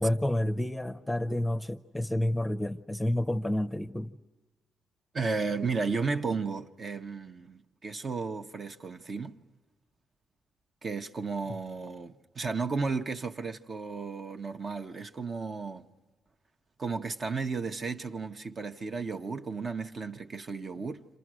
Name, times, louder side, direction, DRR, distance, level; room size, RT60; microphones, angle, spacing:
voice 1, 0.0-4.1, left 1 dB, 10° left, 0.7 m, -29 dB
voice 2, 5.1-9.4 10.8-15.9 16.8-21.1, right 4 dB, 40° right, 0.9 m, -34 dB
29.5 x 26.5 x 6.2 m
cardioid pair, 90°, 0 cm